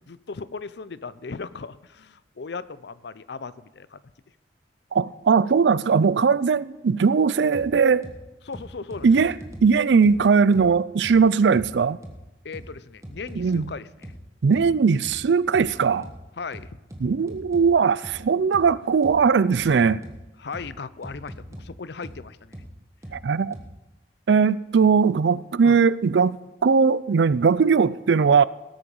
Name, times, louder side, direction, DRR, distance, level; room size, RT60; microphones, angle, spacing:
voice 1, 0.0-4.0 8.4-9.2 12.4-14.1 16.4-16.7 20.4-22.6 25.6-25.8, left 4 dB, 70° left, 0.5 m, -37 dB
voice 2, 4.9-8.1 9.0-9.3 9.6-12.0 13.4-13.7 14.4-16.1 17.0-20.0 23.1-23.6 24.3-26.4 26.6-28.4, right 5 dB, 75° right, 0.4 m, -19 dB
sound 1, 7.5-7.7 8.0-8.2 8.5-9.7 10.0-10.2 10.5-10.7 11.0-11.2 11.5-11.7 12.0-12.2 12.5-12.7 13.0-13.7 14.0-14.2 14.5-14.7 15.0-15.2 15.5-15.7 16.0-16.2 16.5-17.7 18.0-18.2 18.5-18.7 19.0-19.2 19.5-19.7 20.0-20.2 20.5-20.7 21.0-21.7 22.0-22.2 22.5-22.7 23.0-23.2 23.5-23.7, equal, 15° right, 1.4 m, -40 dB
18.0 x 8.6 x 5.4 m
head